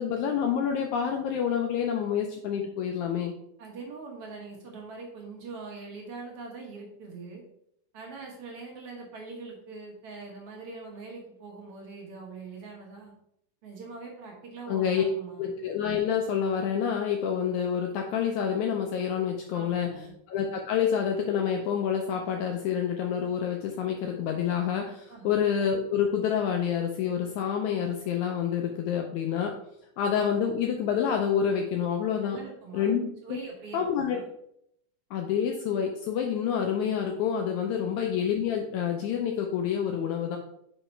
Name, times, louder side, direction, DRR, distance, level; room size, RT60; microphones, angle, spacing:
voice 1, 0.0-3.3 14.7-15.1 15.4-20.0 20.3-29.6 30.0-32.4 32.7-33.4 33.7-34.2 35.1-40.4, left 8 dB, 80° left, 3 dB, 1.8 m, -28 dB
voice 2, 3.6-7.4 7.9-13.1 13.6-15.5 19.5-20.2 25.1-25.4 32.2-33.0 33.2-34.3 37.7-37.9, right 4 dB, 55° right, -1 dB, 1.8 m, -43 dB
5.6 x 5.0 x 4.3 m, 0.74 s
omnidirectional pair, 3.8 m